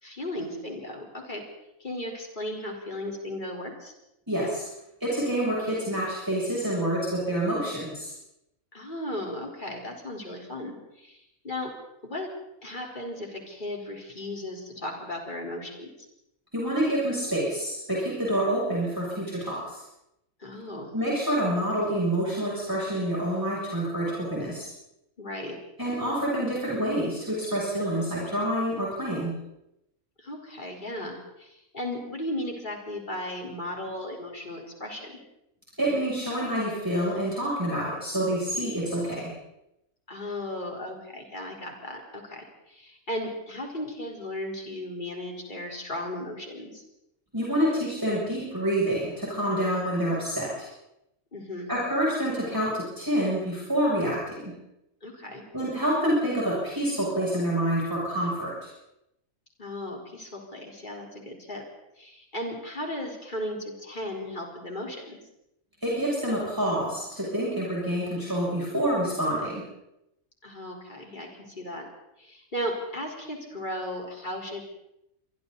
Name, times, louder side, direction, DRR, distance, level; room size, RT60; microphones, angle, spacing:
voice 1, 0.0-1.4 1.8-3.9 8.7-11.7 12.0-12.3 12.6-15.9 20.4-20.9 25.2-25.6 30.2-35.1 40.1-46.8 51.3-51.7 55.0-55.4 59.6-61.6 62.0-65.2 70.4-71.8 72.2-74.6, left 1 dB, 35° left, 0 dB, 4.7 m, -36 dB
voice 2, 4.3-4.7 5.0-8.1 16.5-19.8 20.9-24.7 25.8-29.4 35.8-39.3 47.3-50.7 51.7-54.5 55.5-58.5 65.8-69.6, right 1 dB, 15° right, -6 dB, 7.8 m, -27 dB
27.0 x 23.5 x 4.2 m, 0.84 s
omnidirectional pair, 1.5 m